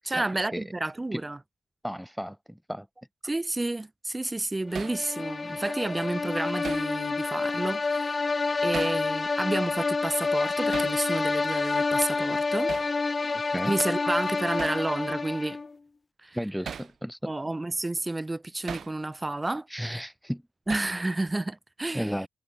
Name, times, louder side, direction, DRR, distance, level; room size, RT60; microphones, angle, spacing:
voice 1, 0.0-1.4 3.2-8.2 8.6-12.7 13.7-15.6 16.2-16.4 17.3-19.7 20.7-22.3, right 2 dB, 20° right, 7.1 m, -30 dB
voice 2, 1.8-2.9 13.3-13.7 16.4-17.3 19.7-20.4 21.9-22.3, equal, ahead, 5.2 m, -33 dB
sound 1, 4.8-15.7, left 3 dB, 40° left, 1.6 m, -28 dB
Hammer, 4.8-5.0 6.6-6.9 8.7-9.0 10.7-11.0 12.7-12.9 14.6-14.9 16.7-16.9 18.7-18.9 20.7-21.0, right 7 dB, 60° right, 5.9 m, -37 dB
hypercardioid pair, 40°, 0 cm